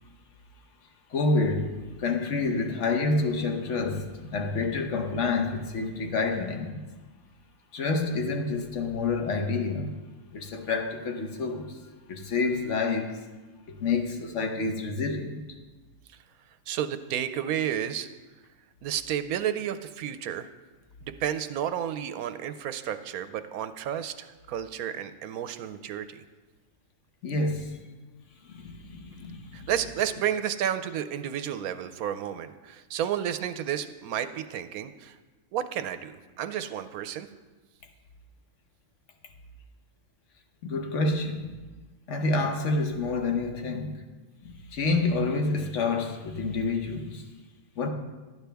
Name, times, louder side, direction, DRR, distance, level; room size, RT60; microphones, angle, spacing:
voice 1, 1.1-6.8 7.7-10.0 10.3-11.8 12.1-13.2 13.7-15.4 27.2-27.8 28.4-29.7 40.6-41.5 42.1-44.0 44.4-47.3 47.8-47.9, left 3 dB, 55° left, 1.3 m, -28 dB
voice 2, 16.7-18.1 18.8-20.5 21.0-26.2 29.5-35.2 35.5-37.3, right 10 dB, 75° right, 1.0 m, -31 dB
12.5 x 9.4 x 3.4 m
omnidirectional pair, 1.6 m